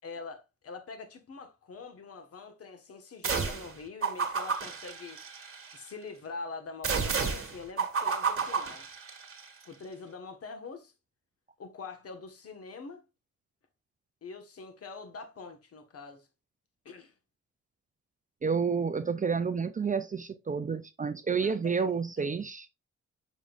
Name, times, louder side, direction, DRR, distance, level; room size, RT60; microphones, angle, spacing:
voice 1, 0.0-5.2 5.7-8.9 9.6-10.9 11.6-13.0 14.2-16.3 16.8-17.1 21.4-21.8 22.2-22.3, left 4 dB, 50° left, 1.5 m, -44 dB
sound 1, 3.2-3.7 4.0-5.8 6.8-9.4, right 5 dB, 50° right, 1.7 m, -31 dB
voice 2, 18.4-22.7, right 5 dB, 25° right, 0.5 m, -30 dB
7.0 x 6.2 x 2.5 m
cardioid pair, 120°, 29 cm